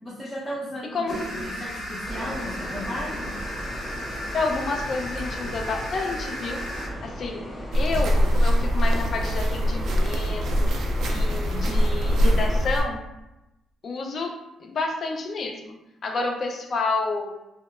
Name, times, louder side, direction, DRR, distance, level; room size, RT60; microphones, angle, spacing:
voice 1, 0.0-3.3, equal, 15° left, -8 dB, 0.7 m, -35 dB
sound 1, 1.1-6.9, equal, 70° left, 0.8 m, -34 dB
sound 2, 2.0-12.6, equal, 35° left, 1.3 m, -37 dB
voice 2, 4.3-6.6 7.0-7.5 7.7-13.0 13.8-14.3 14.6-17.3, left 3 dB, 50° left, 2 dB, 0.4 m, -30 dB
sound 3, 7.7-12.8, equal, 65° right, 0.4 m, -22 dB
2.8 x 2.0 x 2.3 m, 0.94 s
cardioid pair, 90°, 0 cm